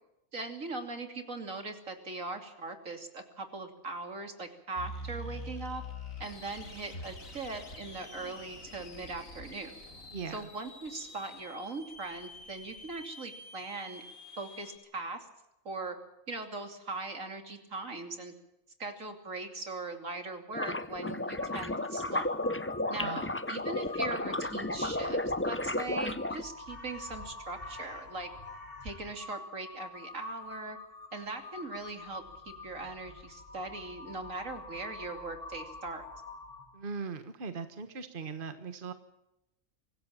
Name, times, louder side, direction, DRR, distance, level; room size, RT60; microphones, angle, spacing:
voice 1, 0.3-5.8 6.2-9.7 10.3-14.1 14.4-15.3 15.6-16.0 16.3-18.3 18.8-22.3 22.9-28.3 28.8-30.8 31.1-36.0, right 3 dB, 75° right, 6 dB, 3.3 m, -40 dB
sound 1, 4.8-14.8, left 1 dB, 80° left, 3.2 m, -46 dB
sound 2, 20.5-26.4, left 1 dB, 10° left, 0.6 m, -33 dB
Crow, 21.4-36.9, left 3 dB, 45° left, 3.1 m, -47 dB
voice 2, 36.7-38.9, right 5 dB, 40° right, 9 dB, 1.5 m, -39 dB
25.0 x 15.5 x 7.4 m, 0.88 s
omnidirectional pair, 1.4 m